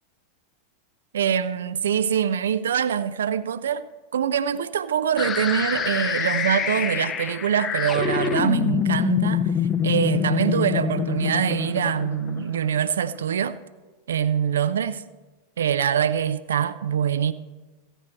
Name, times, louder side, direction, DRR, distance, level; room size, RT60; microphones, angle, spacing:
voice 1, 1.1-3.9 4.1-9.5 9.8-13.6 14.1-15.0 15.6-17.3, right 8 dB, 65° right, 0.4 m, -24 dB
sound 1, 5.2-13.1, left 8 dB, 25° left, 0.5 m, -26 dB
15.0 x 9.0 x 4.4 m
figure-of-eight pair, 90°, 0 cm